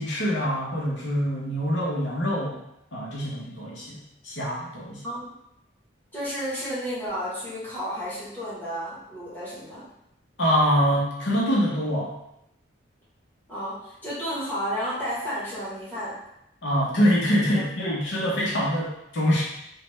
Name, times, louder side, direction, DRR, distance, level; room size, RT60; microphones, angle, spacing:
voice 1, 0.0-2.6 2.9-5.0 10.4-12.1 16.6-19.4, equal, 65° left, -5 dB, 0.7 m, -24 dB
voice 2, 6.1-9.9 13.5-16.1 17.5-18.0, equal, 10° left, -11 dB, 1.1 m, -32 dB
3.2 x 2.1 x 3.1 m, 0.79 s
head